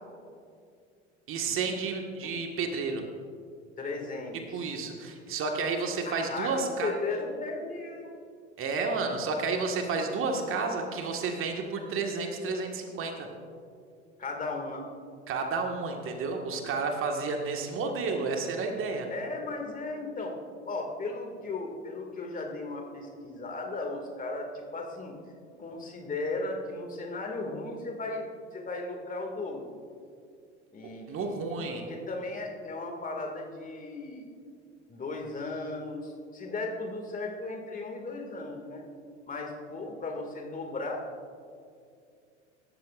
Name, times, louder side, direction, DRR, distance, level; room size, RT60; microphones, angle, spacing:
voice 1, 1.3-3.0 4.5-6.9 8.6-13.3 15.3-19.1 31.1-31.8, right 4 dB, 35° right, 3 dB, 1.8 m, -31 dB
voice 2, 3.8-4.7 6.1-8.1 14.2-14.8 19.1-20.3 20.6-25.2 25.6-29.7 30.7-31.5 31.9-34.3 34.9-38.8 39.3-41.0, left 3 dB, 20° left, 2 dB, 2.3 m, -36 dB
25.0 x 13.5 x 2.5 m, 2.3 s
figure-of-eight pair, 75°, 36 cm